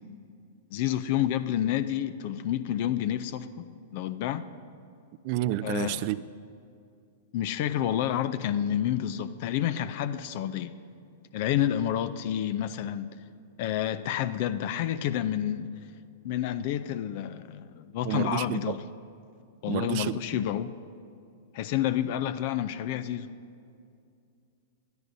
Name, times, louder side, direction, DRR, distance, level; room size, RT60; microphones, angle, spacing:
voice 1, 0.7-4.4 5.6-6.1 7.3-10.7 11.3-13.1 13.6-15.7 16.2-18.8 19.6-20.7 21.5-23.3, left 11 dB, 55° left, 0.4 m, -29 dB
voice 2, 5.2-6.2 18.0-18.8 19.7-20.2, right 14 dB, 50° right, 0.4 m, -30 dB
20.5 x 12.5 x 2.7 m
hypercardioid pair, 110°, 0 cm